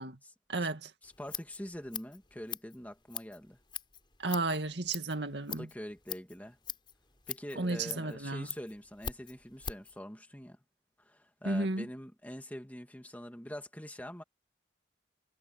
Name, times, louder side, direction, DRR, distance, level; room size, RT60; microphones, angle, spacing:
voice 1, 0.5-0.9 4.2-5.7 7.6-8.5 11.5-11.8, right 2 dB, 65° right, 2.1 m, -33 dB
Scissors, 1.0-10.0, left 7 dB, 25° left, 5.5 m, -43 dB
voice 2, 1.0-3.6 5.5-6.6 7.3-10.6 11.0-14.2, equal, 10° left, 2.0 m, -44 dB
head